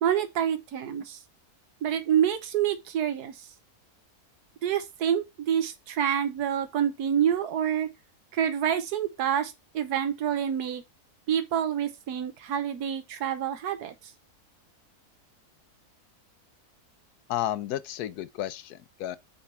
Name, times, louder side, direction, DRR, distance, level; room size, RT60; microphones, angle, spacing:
voice 1, 0.0-1.2 1.8-3.3 4.6-7.9 8.3-10.8 11.3-13.9, right 9 dB, 90° right, 1.4 m, -27 dB
voice 2, 17.3-19.2, left 12 dB, 85° left, 1.2 m, -32 dB
7.6 x 3.5 x 4.4 m
omnidirectional pair, 1.6 m